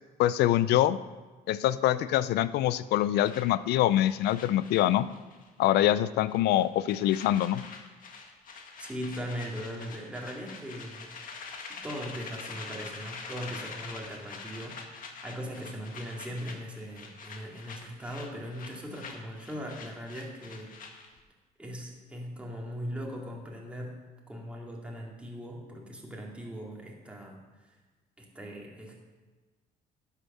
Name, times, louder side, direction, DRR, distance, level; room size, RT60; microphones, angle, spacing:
voice 1, 0.2-1.0 1.5-5.1 5.6-7.6, left 13 dB, 75° left, 16 dB, 0.5 m, -24 dB
sound 1, 3.2-5.5 5.7-6.0 6.3-21.2, left 4 dB, 55° left, 1.8 m, -45 dB
voice 2, 8.8-11.2 11.8-14.8 15.2-20.7 21.6-27.4 28.2-29.0, equal, 5° right, -2 dB, 2.5 m, -39 dB
11.5 x 8.2 x 5.6 m, 1.3 s
cardioid pair, 110°, 17 cm